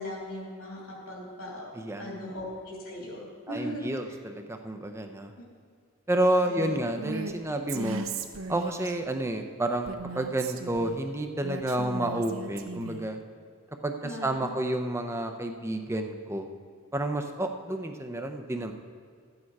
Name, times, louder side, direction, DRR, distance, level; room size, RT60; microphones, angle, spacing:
voice 1, 0.0-1.6 2.0-3.2 3.5-4.1 6.5-6.7 14.0-14.6, left 1 dB, 75° left, -4 dB, 3.0 m, -38 dB
voice 2, 1.7-2.3 3.5-5.3 6.1-8.0 8.5-13.2 13.8-16.5 16.9-18.7, right 1 dB, 10° right, 6 dB, 0.6 m, -30 dB
Female speech woman speaking, 7.0-7.3 7.7-8.9 9.8-11.0 11.4-13.1, right 3 dB, 65° right, 0.7 m, -37 dB
13.0 x 8.8 x 4.7 m, 2.1 s
head